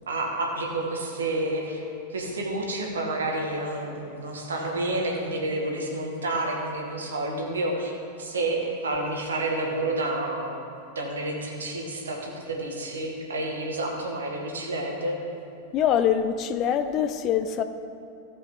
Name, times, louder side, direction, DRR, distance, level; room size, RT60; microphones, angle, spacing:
voice 1, 0.1-1.8 2.1-7.9 8.2-10.5 11.0-15.2, right 2 dB, 70° right, 1 dB, 1.7 m, -29 dB
voice 2, 15.7-17.6, left 9 dB, 35° left, 10 dB, 0.6 m, -24 dB
14.5 x 7.8 x 3.7 m, 2.6 s
figure-of-eight pair, 90°, 0 cm